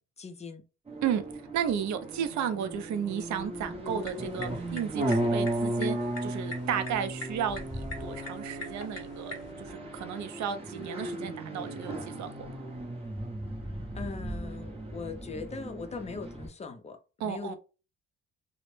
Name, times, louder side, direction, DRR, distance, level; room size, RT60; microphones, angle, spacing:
voice 1, 0.2-0.6 14.0-17.6, left 4 dB, 20° left, 0.4 m, -40 dB
sound 1, 0.9-16.5, right 1 dB, 20° right, 0.6 m, -35 dB
voice 2, 1.5-12.3 17.2-17.6, right 8 dB, 70° right, 0.5 m, -33 dB
sound 2, 3.8-9.5, left 2 dB, 55° left, 0.8 m, -45 dB
2.0 x 2.0 x 3.1 m
cardioid pair, 90°, 30 cm